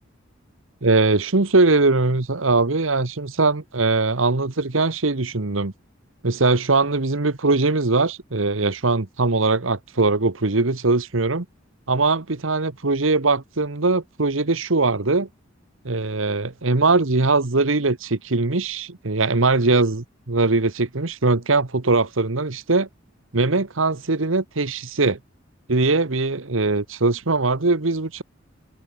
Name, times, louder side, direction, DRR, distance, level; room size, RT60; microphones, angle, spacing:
voice 1, 0.8-5.7 6.2-11.4 11.9-15.3 15.8-22.9 23.3-25.2 25.7-28.2, right 3 dB, 85° right, 1.4 m, -21 dB
head